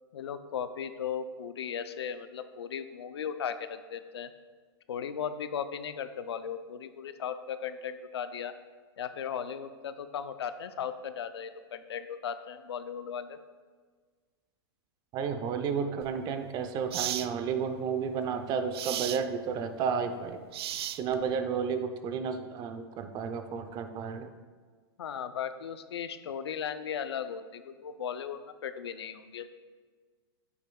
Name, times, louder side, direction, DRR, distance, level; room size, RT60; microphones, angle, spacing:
voice 1, 0.1-4.3 4.9-8.5 9.0-13.4 25.0-29.5, left 8 dB, 85° left, 11 dB, 0.5 m, -37 dB
voice 2, 15.1-20.4 21.0-24.3, right 6 dB, 30° right, 8 dB, 0.6 m, -32 dB
sound 1, 16.0-16.2 16.9-17.3 18.7-19.2 20.5-21.3, right 12 dB, 70° right, 0.4 m, -34 dB
8.8 x 8.5 x 2.3 m, 1.5 s
hypercardioid pair, 130°, 13 cm